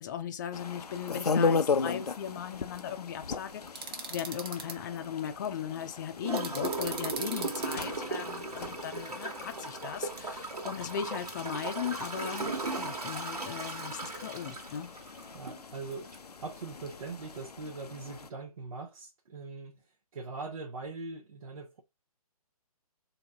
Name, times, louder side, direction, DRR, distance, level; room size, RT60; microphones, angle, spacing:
voice 1, 0.0-14.9, left 9 dB, 30° left, 0.5 m, -38 dB
sound 1, 0.5-18.3, left 4 dB, 90° left, 0.5 m, -37 dB
sound 2, 3.8-4.7 6.4-7.9, right 5 dB, 40° right, 1.0 m, -38 dB
Gurgling / Toilet flush, 6.2-15.6 16.1-16.2, right 3 dB, 85° right, 1.5 m, -37 dB
voice 2, 15.3-21.8, right 3 dB, 60° right, 0.8 m, -42 dB
3.9 x 2.7 x 3.4 m
figure-of-eight pair, 140°, 19 cm